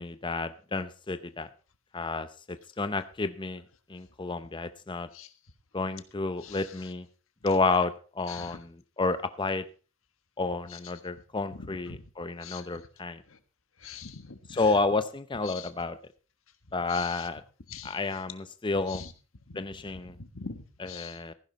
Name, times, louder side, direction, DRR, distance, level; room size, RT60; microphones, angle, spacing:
voice 1, 0.0-1.5 1.9-3.6 3.9-5.1 5.7-7.1 7.4-9.6 10.4-13.2 14.5-16.0 16.7-17.4 17.8-19.0 19.6-20.2 20.8-21.3, left 3 dB, 25° left, 11 dB, 0.6 m, -30 dB
voice 2, 8.3-8.6 11.9-12.0 12.4-12.6 13.8-14.6 15.5-15.7 16.9-17.2 17.7-18.0 18.9-19.1 20.2-21.2, left 6 dB, 85° left, 9 dB, 1.5 m, -43 dB
15.0 x 11.0 x 4.1 m, 0.36 s
head